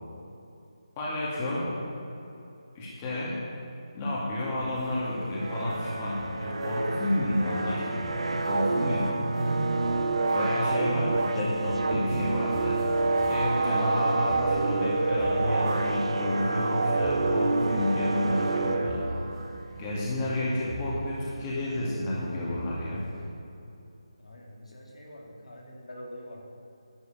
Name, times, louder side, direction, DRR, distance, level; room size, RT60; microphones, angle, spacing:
voice 1, 1.0-1.7 2.7-3.4 3.9-9.1 10.3-12.8 13.3-19.0 19.8-23.0, left 1 dB, 20° left, -6 dB, 2.3 m, -30 dB
sound 1, 4.6-23.3, right 1 dB, 30° right, 2.4 m, -42 dB
sound 2, 5.4-19.5, right 3 dB, 65° right, 1.2 m, -28 dB
voice 2, 24.2-26.4, left 1 dB, 75° left, -2 dB, 3.2 m, -45 dB
11.0 x 6.8 x 9.4 m, 2.8 s
figure-of-eight pair, 165°, 3 cm